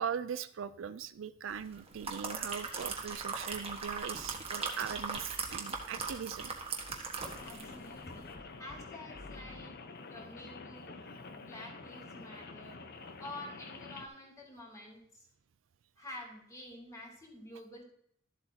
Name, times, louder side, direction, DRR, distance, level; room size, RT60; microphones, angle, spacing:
voice 1, 0.0-6.8, right 7 dB, 70° right, 13 dB, 0.4 m, -40 dB
sound 1, 1.7-7.8 8.1-8.3, right 5 dB, 30° right, 1.4 m, -39 dB
sound 2, 4.8-4.9 5.1-5.2 5.5-5.6 6.0-6.1 6.4-6.5 6.9-7.3 7.7-7.8 8.1-8.4 8.7-8.8 9.1-9.6, left 1 dB, 85° left, 2.5 m, -51 dB
Rain, 7.2-14.1, left 3 dB, 55° left, 0.8 m, -48 dB
voice 2, 7.4-9.7 10.1-10.9 11.3-12.8 13.1-15.3 16.0-17.8, left 1 dB, 15° left, -2 dB, 3.0 m, -49 dB
12.5 x 7.8 x 2.9 m, 0.71 s
head